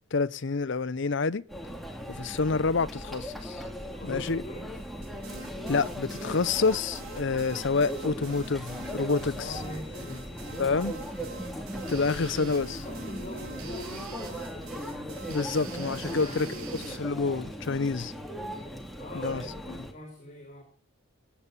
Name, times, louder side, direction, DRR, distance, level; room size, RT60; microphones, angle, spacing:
voice 1, 0.1-1.5 2.1-3.6 4.0-4.4 5.7-9.6 10.6-11.0 11.9-12.8 15.3-16.5 17.0-18.1 19.1-19.4, left 4 dB, 55° left, 0.6 m, -28 dB
Conversation / Chatter / Crowd, 1.5-19.9, equal, ahead, 2.2 m, -38 dB
voice 2, 3.9-4.8 9.3-10.3 12.5-14.9 16.0-16.7 19.0-20.6, left 1 dB, 35° left, 4.8 m, -43 dB
sound 1, 5.0-17.0, right 4 dB, 80° right, 2.8 m, -46 dB
19.5 x 8.3 x 7.2 m
head